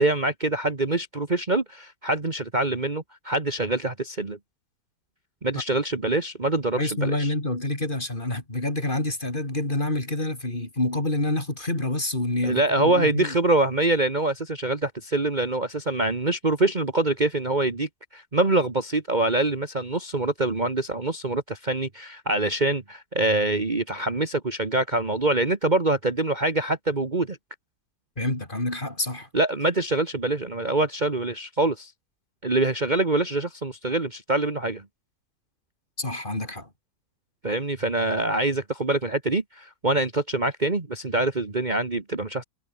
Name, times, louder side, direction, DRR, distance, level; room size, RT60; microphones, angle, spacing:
voice 1, 0.0-4.4 5.4-7.3 12.4-27.4 29.3-31.9 32.4-34.8 37.4-42.4, right 2 dB, 25° right, 1.9 m, -25 dB
voice 2, 6.8-13.3 28.2-29.3 36.0-36.7, left 2 dB, 30° left, 4.3 m, -27 dB
omnidirectional pair, 1.8 m